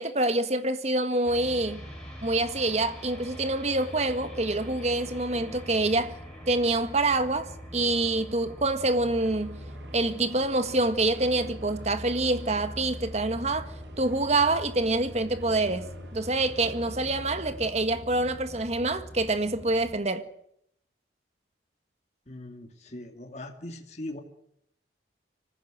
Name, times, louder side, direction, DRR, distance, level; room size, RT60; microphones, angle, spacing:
voice 1, 0.0-1.9 2.2-6.2 6.5-9.6 9.9-20.3, right 2 dB, 40° right, 1.7 m, -26 dB
sound 1, 1.2-19.9, equal, 5° left, 6.6 m, -42 dB
sound 2, 8.5-17.7, right 1 dB, 85° right, 2.9 m, -50 dB
voice 2, 22.3-24.2, left 1 dB, 40° left, 2.5 m, -40 dB
25.0 x 15.5 x 7.9 m
head